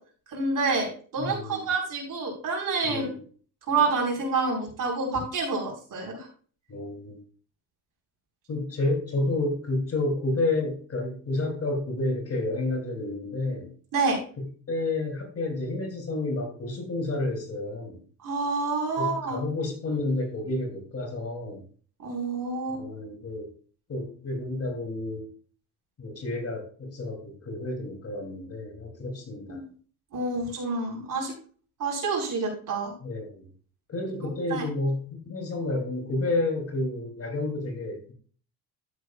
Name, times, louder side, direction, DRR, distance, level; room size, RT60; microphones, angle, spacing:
voice 1, 0.3-3.1 3.7-6.3 13.9-14.2 18.2-19.4 22.0-22.8 29.5-29.7 30.1-31.3 31.8-32.9 34.2-34.6, right 3 dB, 55° right, 0 dB, 4.8 m, -28 dB
voice 2, 1.2-1.7 2.8-3.2 6.7-7.2 8.5-13.7 14.4-18.0 19.0-21.6 22.8-23.5 23.9-25.2 26.0-29.6 33.0-33.5 33.9-38.1, left 2 dB, 40° left, 3 dB, 3.0 m, -30 dB
12.5 x 8.2 x 2.4 m, 0.42 s
cardioid pair, 105°, 39 cm